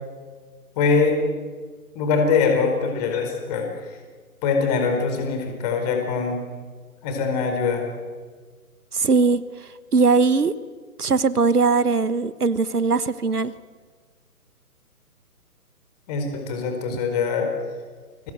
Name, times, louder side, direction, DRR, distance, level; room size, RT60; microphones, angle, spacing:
voice 1, 0.8-1.2 1.9-4.0 4.4-6.4 7.0-7.9 16.1-17.5, left 5 dB, 25° left, 4 dB, 4.9 m, -23 dB
voice 2, 8.9-9.4 9.9-10.5 11.0-13.5, right 4 dB, 75° right, 16 dB, 1.3 m, -20 dB
29.5 x 23.0 x 8.0 m, 1.5 s
figure-of-eight pair, 140°, 46 cm